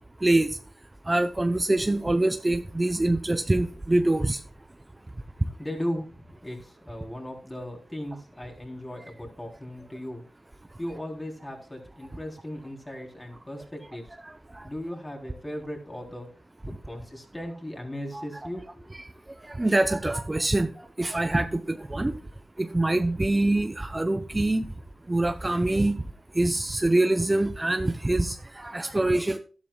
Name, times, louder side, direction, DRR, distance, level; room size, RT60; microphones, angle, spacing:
voice 1, 1.1-4.4 14.2-14.6 18.1-18.4 18.9-19.1 19.5-20.7 21.0-22.1 22.6-24.7 25.1-26.0 26.3-29.4, right 2 dB, 20° right, 8 dB, 0.7 m, -25 dB
voice 2, 5.6-10.2 10.8-14.2 14.6-16.3 16.6-18.9, equal, 20° left, 1 dB, 3.7 m, -37 dB
12.5 x 11.5 x 2.4 m, 0.42 s
cardioid pair, 60°, 0 cm